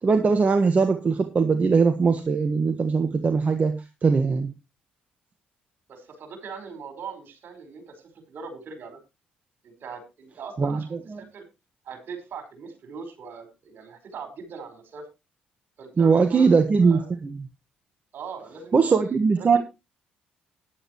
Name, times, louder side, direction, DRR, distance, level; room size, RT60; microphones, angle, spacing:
voice 1, 0.0-4.5 10.6-11.2 16.0-17.4 18.7-19.6, right 5 dB, 40° right, 6 dB, 1.5 m, -21 dB
voice 2, 5.9-8.0 8.3-9.0 9.6-11.4 11.8-15.0 15.8-17.1 18.1-19.6, right 5 dB, 55° right, 7 dB, 4.9 m, -40 dB
14.5 x 10.5 x 3.1 m, 0.26 s
hypercardioid pair, 50°, 4 cm